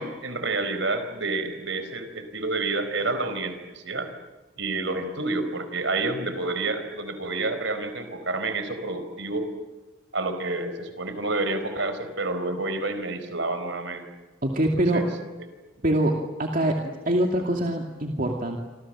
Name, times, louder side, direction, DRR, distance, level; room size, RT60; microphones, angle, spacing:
voice 1, 0.0-4.1 4.6-9.5 10.1-14.0 14.9-15.0 16.0-16.1, right 3 dB, 60° right, 9 dB, 4.3 m, -29 dB
voice 2, 14.4-15.0 15.8-18.6, right 1 dB, 40° right, 2 dB, 2.5 m, -24 dB
28.0 x 26.5 x 7.6 m, 1.3 s
head